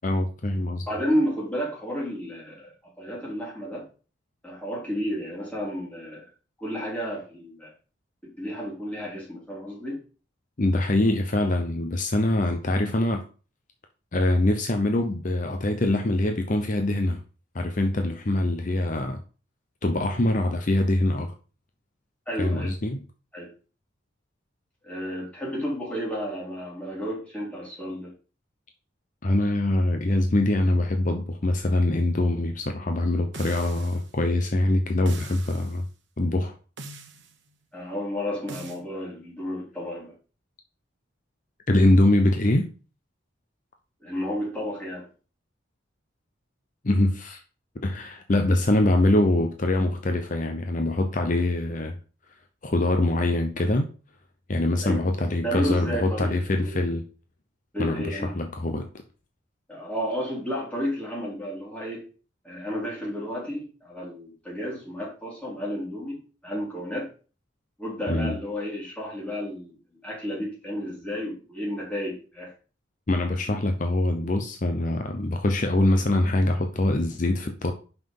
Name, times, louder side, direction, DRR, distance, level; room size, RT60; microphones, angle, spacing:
voice 1, 0.0-0.9 10.6-13.2 14.1-17.2 17.5-19.2 19.8-21.3 22.4-23.0 29.2-35.9 36.2-36.5 41.7-42.7 46.8-47.4 47.8-52.0 52.6-53.9 54.5-57.0 57.8-58.9 68.1-68.3 73.1-77.7, left 1 dB, 40° left, 0.7 m, -24 dB
voice 2, 0.9-3.9 4.4-6.2 6.6-7.7 8.2-10.0 22.2-22.7 23.3-23.5 24.8-28.1 37.7-40.1 44.0-45.1 54.8-55.0 55.4-56.8 57.7-58.3 59.7-62.1 62.4-67.1 67.8-72.5 73.3-73.6, equal, 5° left, 3.4 m, -32 dB
sound 1, 33.3-34.1 35.1-35.8 36.8-37.3 38.5-38.8, right 3 dB, 65° right, 1.0 m, -42 dB
5.7 x 5.6 x 5.5 m
head